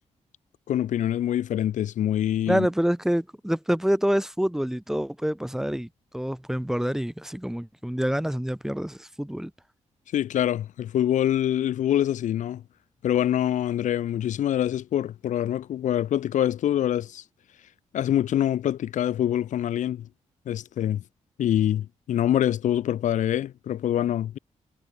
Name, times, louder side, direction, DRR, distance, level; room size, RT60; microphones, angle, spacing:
voice 1, 0.7-2.7 10.1-12.6 13.0-17.2 17.9-20.1 20.5-21.0 21.4-24.4, left 11 dB, 85° left, 0.7 m, -25 dB
voice 2, 2.5-9.5, equal, 5° right, 1.1 m, -27 dB
cardioid pair, 100°, 12 cm